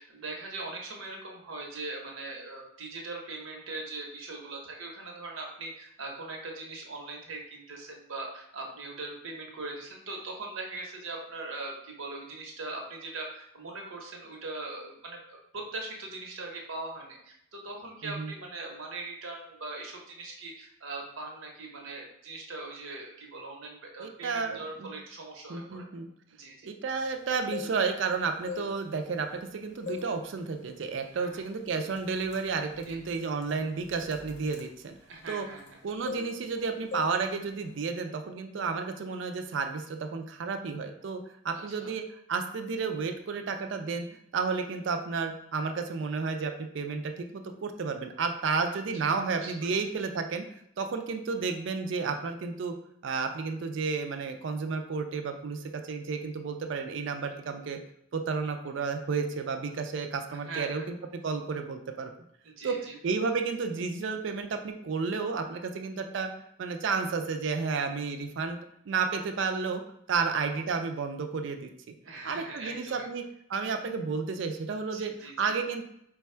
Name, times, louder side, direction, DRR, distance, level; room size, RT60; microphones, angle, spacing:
voice 1, 0.0-25.9 26.4-26.7 31.1-31.4 32.8-33.0 35.1-35.8 41.7-41.9 43.4-43.5 49.4-49.7 57.3-57.5 60.3-60.8 62.4-62.9 72.0-73.1 74.9-75.5, right 2 dB, 85° right, 0 dB, 0.9 m, -41 dB
voice 2, 24.0-24.9 25.5-26.1 26.6-34.9 35.3-35.5 35.8-44.1 44.3-50.4 50.8-52.7 53.0-57.8 58.1-61.0 61.2-62.1 62.6-62.8 63.0-66.3 66.6-68.6 68.9-69.8 70.1-71.7 72.2-73.2 73.5-75.9, right 5 dB, 65° right, 6 dB, 0.4 m, -32 dB
sound 1, 27.3-28.1 28.4-29.5 29.9-30.2 30.6-30.8 31.4-31.6 31.9-35.8 36.0-36.6 36.9-37.2 37.5-37.7, left 5 dB, 55° left, 0.6 m, -41 dB
4.1 x 2.3 x 4.3 m, 0.73 s
head